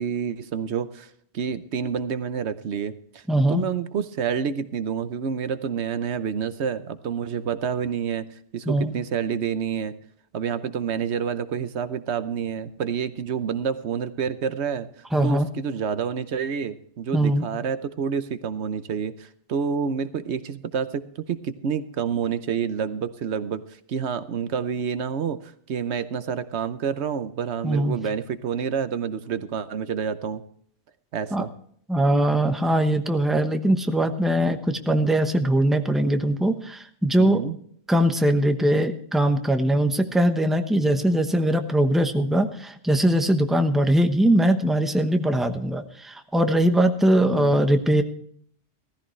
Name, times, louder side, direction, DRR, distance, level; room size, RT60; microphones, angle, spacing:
voice 1, 0.0-3.2 3.5-8.2 8.5-9.9 10.3-14.9 15.2-23.6 23.9-30.4 31.1-31.5 37.2-37.5 47.3-47.6, right 7 dB, 80° right, 12 dB, 1.1 m, -28 dB
voice 2, 3.3-3.6 8.7-8.9 15.1-15.5 17.1-17.5 27.6-28.0 31.3-31.4 31.9-37.4 37.9-48.0, right 1 dB, ahead, 6 dB, 0.9 m, -21 dB
16.5 x 14.5 x 3.2 m, 0.63 s
omnidirectional pair, 1.1 m